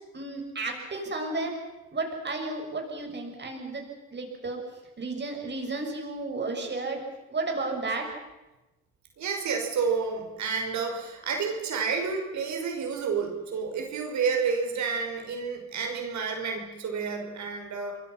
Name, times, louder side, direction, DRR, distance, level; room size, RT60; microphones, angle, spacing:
voice 1, 0.1-1.5 1.9-3.8 4.1-4.6 5.0-7.0 7.3-8.1, right 3 dB, 35° right, 2 dB, 7.0 m, -32 dB
voice 2, 9.2-18.0, right 5 dB, 70° right, 3 dB, 5.5 m, -30 dB
28.0 x 22.0 x 5.8 m, 1.1 s
cardioid pair, 90°, 30 cm